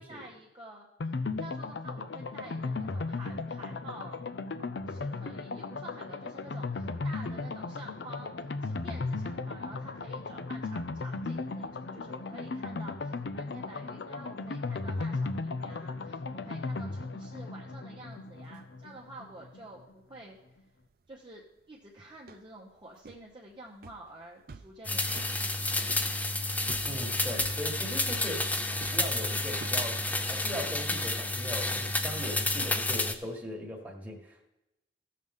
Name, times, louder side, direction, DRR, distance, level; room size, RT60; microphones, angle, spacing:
voice 1, 0.0-4.2 4.9-20.4 21.1-25.9, right 1 dB, 25° right, -3 dB, 0.9 m, -49 dB
sound 1, 1.0-19.6 19.9-20.0 20.2-20.3, left 3 dB, 70° left, 0.5 m, -36 dB
sound 2, 18.1-18.6 18.8-19.3 19.7-31.7, right 3 dB, 55° right, 0.5 m, -50 dB
sound 3, 24.8-33.1, left 2 dB, 10° left, 0.4 m, -30 dB
voice 2, 26.8-28.6 28.8-34.5, equal, 10° right, 0 dB, 1.5 m, -39 dB
15.0 x 6.6 x 3.6 m, 0.94 s
head